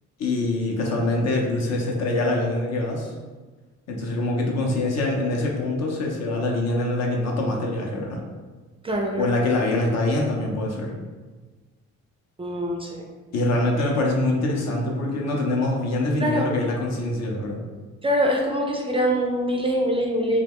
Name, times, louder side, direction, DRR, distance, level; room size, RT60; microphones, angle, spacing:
voice 1, 0.2-3.1 3.9-8.2 9.2-10.9 13.3-17.6, left 2 dB, 60° left, 0 dB, 0.6 m, -24 dB
voice 2, 8.8-9.3 12.4-13.0 16.2-16.5 18.0-20.4, equal, 20° right, 0 dB, 0.3 m, -24 dB
2.2 x 2.1 x 3.4 m, 1.3 s
cardioid pair, 90°, 30 cm